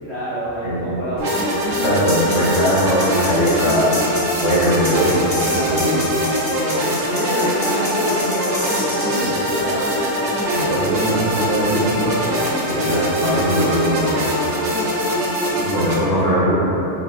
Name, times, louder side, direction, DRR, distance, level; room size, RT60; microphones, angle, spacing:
voice 1, 0.0-2.2 5.4-6.1 7.1-10.3 12.7-13.2 15.8-16.2, right 1 dB, 50° right, -15 dB, 1.9 m, -28 dB
voice 2, 0.6-0.9 1.8-4.0 4.4-6.0 9.1-9.3 9.5-9.7 10.5-12.1 12.7-14.1 15.6-16.8, equal, 90° left, -8 dB, 1.6 m, -20 dB
sound 1, 1.2-15.9, equal, 80° right, 1.1 m, -22 dB
sound 2, 2.1-9.4, left 1 dB, 45° left, 1.3 m, -29 dB
4.4 x 4.1 x 2.5 m, 2.9 s
omnidirectional pair, 1.2 m